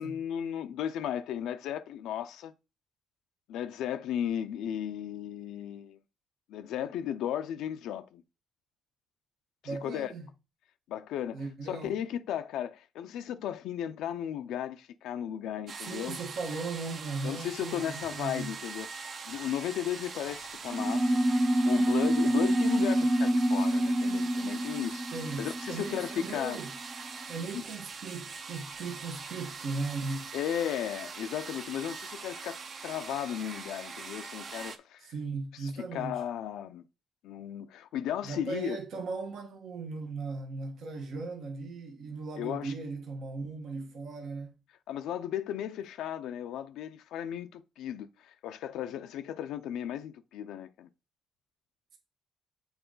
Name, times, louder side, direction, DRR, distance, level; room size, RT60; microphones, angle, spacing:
voice 1, 0.0-2.5 3.5-6.0 6.5-8.2 9.6-10.1 10.9-16.2 17.2-21.2 21.6-25.0 25.4-26.6 27.5-27.6 30.3-35.1 35.5-36.8 37.2-38.8 42.4-42.7 44.9-50.9, left 10 dB, 85° left, 0.4 m, -35 dB
voice 2, 9.6-10.3 11.3-11.9 15.8-18.5 25.1-26.7 27.3-30.3 35.0-36.2 38.2-44.5, right 3 dB, 70° right, 1.3 m, -38 dB
sound 1, 15.7-34.8, right 5 dB, 55° right, 0.8 m, -42 dB
sound 2, 20.7-26.6, right 1 dB, ahead, 0.5 m, -27 dB
7.0 x 3.7 x 3.9 m
cardioid pair, 90°, 0 cm